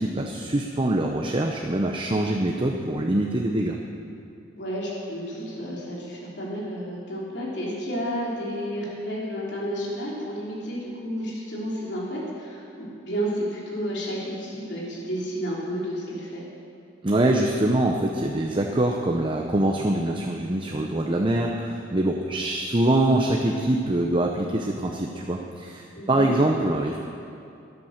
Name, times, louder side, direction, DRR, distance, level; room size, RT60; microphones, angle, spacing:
voice 1, 0.0-3.8 17.0-27.0, right 1 dB, 30° right, 1 dB, 0.7 m, -24 dB
voice 2, 4.6-16.4 25.9-26.3, equal, 65° left, -5 dB, 3.4 m, -31 dB
13.0 x 10.5 x 6.6 m, 2.6 s
head